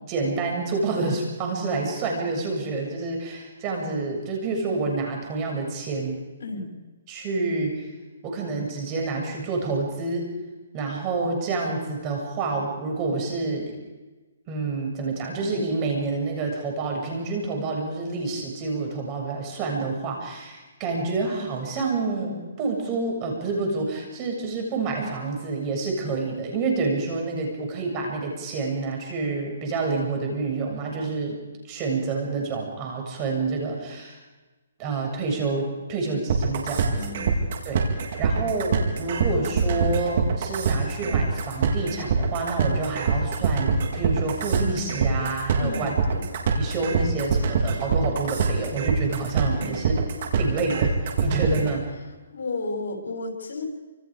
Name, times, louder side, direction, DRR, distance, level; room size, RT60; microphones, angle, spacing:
voice 1, 0.1-6.2 7.1-7.8 8.2-10.3 10.7-13.7 14.5-31.4 31.7-34.2 34.8-36.9 37.6-37.9 38.2-45.9 46.6-50.1 50.3-51.8, right 3 dB, 25° right, 1 dB, 7.7 m, -28 dB
sound 1, 36.3-51.7, right 6 dB, 50° right, 4.5 m, -24 dB
voice 2, 36.9-37.4 45.6-46.3 49.6-49.8 51.5-51.7 52.3-53.6, left 3 dB, 70° left, 3 dB, 7.1 m, -33 dB
28.5 x 27.5 x 5.3 m, 1.2 s
hypercardioid pair, 155°, 0 cm